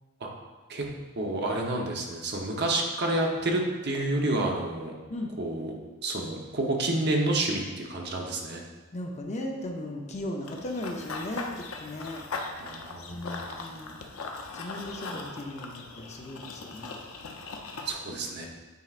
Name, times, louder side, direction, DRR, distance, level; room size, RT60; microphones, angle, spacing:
voice 1, 1.2-4.9 5.4-5.7 6.0-8.6 12.6-13.2 17.8-18.5, right 2 dB, 50° right, 0 dB, 0.9 m, -29 dB
voice 2, 8.9-12.2 13.1-14.0 14.5-16.9, left 1 dB, 35° left, 1 dB, 0.6 m, -37 dB
Run / Bird vocalization bird call bird song, 10.5-17.9, left 3 dB, 85° left, 0.7 m, -39 dB
9.3 x 4.5 x 2.5 m, 1.3 s
head